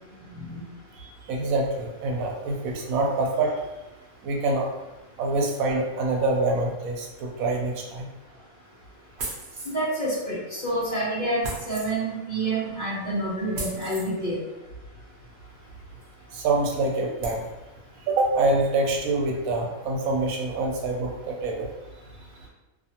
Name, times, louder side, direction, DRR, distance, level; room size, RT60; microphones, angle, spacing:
voice 1, 0.3-0.6 1.0-3.7 4.2-4.7 5.2-8.1 16.3-17.4 18.1-21.7, right 2 dB, 90° right, 1 dB, 1.0 m, -26 dB
sound 1, 9.2-9.9 11.4-11.9 13.5-14.1 16.0-16.1 16.6-16.7 17.2-17.4, right 2 dB, 55° right, 0.6 m, -35 dB
voice 2, 9.6-14.4, right 1 dB, 35° left, -9 dB, 0.9 m, -28 dB
2.5 x 2.4 x 2.7 m, 1.0 s
omnidirectional pair, 1.4 m